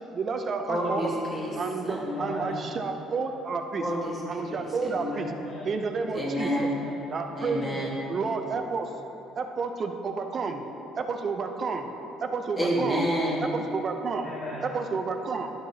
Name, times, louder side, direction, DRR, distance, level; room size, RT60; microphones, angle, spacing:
voice 1, 0.1-1.1 1.5-3.8 4.3-5.3 5.7-6.7 7.1-7.8 8.1-8.9 9.4-10.6 11.0-11.9 12.2-13.0 13.5-14.3 14.7-15.5, right 4 dB, 30° right, 5 dB, 0.5 m, -30 dB
voice 2, 0.7-1.5 1.8-2.4 3.8-5.3 6.1-6.7 7.3-8.0 12.6-13.4, equal, 15° left, -6 dB, 1.5 m, -29 dB
voice 3, 2.1-2.6 5.2-5.7 6.5-7.0 7.6-8.0 14.2-14.7, left 1 dB, 75° left, -10 dB, 1.8 m, -41 dB
12.0 x 7.6 x 2.7 m, 2.9 s
cardioid pair, 175°, 0 cm